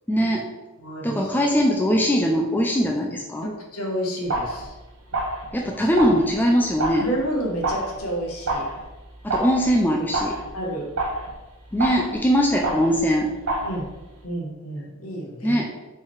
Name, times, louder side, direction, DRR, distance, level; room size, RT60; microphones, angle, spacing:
voice 1, 0.1-0.5 1.0-3.5 5.5-7.1 9.2-10.4 11.7-13.3 15.4-15.7, equal, 10° left, 0 dB, 0.3 m, -21 dB
voice 2, 0.8-1.2 3.4-4.7 6.9-8.7 10.5-10.9 13.6-13.9 14.2-15.6, right 1 dB, 70° left, 0 dB, 1.0 m, -30 dB
sound 1, 4.2-14.2, right 2 dB, 65° right, 0.9 m, -30 dB
4.4 x 3.1 x 3.5 m, 1.2 s
head